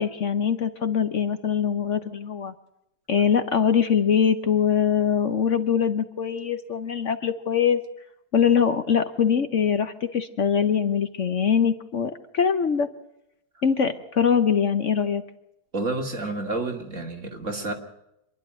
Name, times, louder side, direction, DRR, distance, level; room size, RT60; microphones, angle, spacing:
voice 1, 0.0-2.5 3.1-7.8 8.3-12.9 13.6-15.2, left 7 dB, 55° left, 10 dB, 1.2 m, -23 dB
voice 2, 15.7-17.7, right 2 dB, 50° right, 3 dB, 3.0 m, -29 dB
26.5 x 11.0 x 9.0 m, 0.84 s
omnidirectional pair, 1.7 m